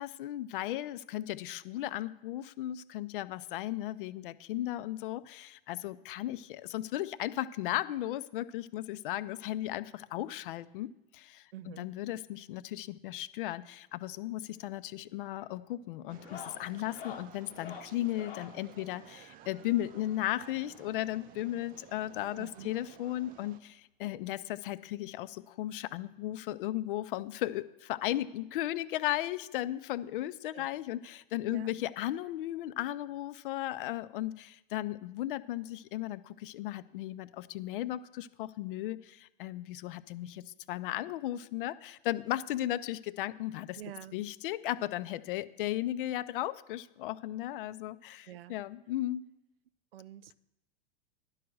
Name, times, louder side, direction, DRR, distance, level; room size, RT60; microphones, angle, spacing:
voice 1, 0.0-43.8 44.1-49.2, left 14 dB, 65° left, 16 dB, 0.5 m, -36 dB
voice 2, 11.5-11.9 22.4-22.7 30.5-30.7 31.5-31.7 43.8-44.2 48.3-48.5 49.9-50.3, right 12 dB, 80° right, 16 dB, 0.5 m, -47 dB
sound 1, 14.5-14.9 15.2-15.5 16.1-18.6 19.9-21.3 22.3-22.4 22.6-22.8 23.2-23.3 24.6-24.7 26.0-26.1, left 7 dB, 85° left, 1.0 m, -49 dB
sound 2, 16.1-23.6, right 10 dB, 30° right, 0.5 m, -54 dB
10.5 x 4.7 x 6.3 m, 0.90 s
hypercardioid pair, 100°, 29 cm